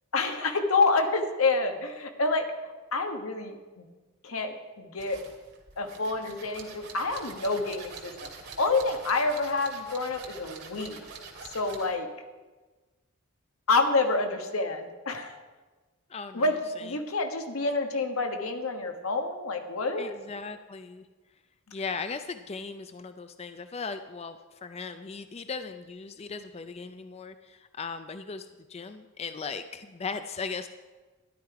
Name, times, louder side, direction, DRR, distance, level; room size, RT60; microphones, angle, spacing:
voice 1, 0.1-2.5 2.9-3.8 4.2-5.2 5.8-8.3 8.6-11.0 11.5-12.1 13.7-15.4 16.3-20.1, left 3 dB, 85° left, 5 dB, 1.3 m, -28 dB
sound 1, 5.0-12.0, right 4 dB, 55° right, 2.2 m, -45 dB
voice 2, 16.1-16.9 20.0-21.1 21.7-30.7, left 4 dB, 30° left, 9 dB, 0.4 m, -38 dB
12.5 x 11.0 x 4.8 m, 1.3 s
head